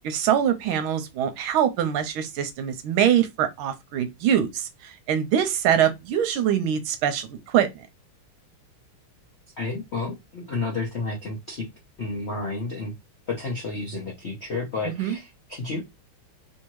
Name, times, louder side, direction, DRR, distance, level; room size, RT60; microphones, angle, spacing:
voice 1, 0.0-7.7 15.0-15.2, right 9 dB, 80° right, 1.4 m, -23 dB
voice 2, 9.6-11.7 12.0-12.9 13.3-15.8, left 3 dB, 70° left, 0.6 m, -31 dB
3.5 x 2.7 x 3.0 m
omnidirectional pair, 2.4 m